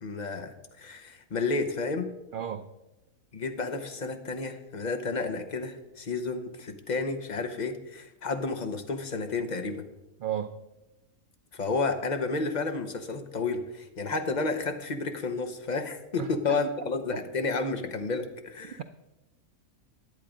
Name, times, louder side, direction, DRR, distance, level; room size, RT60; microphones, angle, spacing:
voice 1, 0.0-2.1 3.3-9.8 11.5-18.8, left 3 dB, 35° left, 7 dB, 0.9 m, -31 dB
voice 2, 2.3-2.7 10.2-10.6 16.2-16.6 17.1-17.2 18.6-18.8, right 9 dB, 90° right, 9 dB, 0.4 m, -34 dB
11.0 x 8.3 x 5.1 m, 0.99 s
omnidirectional pair, 1.5 m